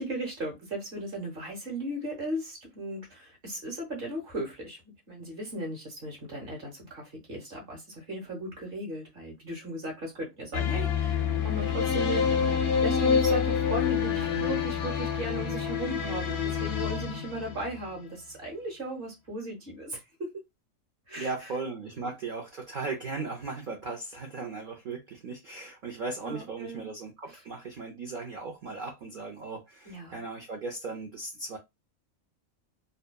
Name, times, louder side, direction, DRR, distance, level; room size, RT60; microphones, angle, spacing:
voice 1, 0.0-4.8 5.1-12.6 12.8-20.4 21.1-21.3 22.0-22.1 26.2-26.9 29.9-30.2, right 1 dB, 45° right, 1.1 m, -37 dB
sound 1, 10.5-18.0, left 6 dB, 65° left, 0.7 m, -27 dB
voice 2, 21.2-31.6, right 3 dB, 80° right, 0.4 m, -37 dB
2.7 x 2.2 x 2.2 m
omnidirectional pair, 1.4 m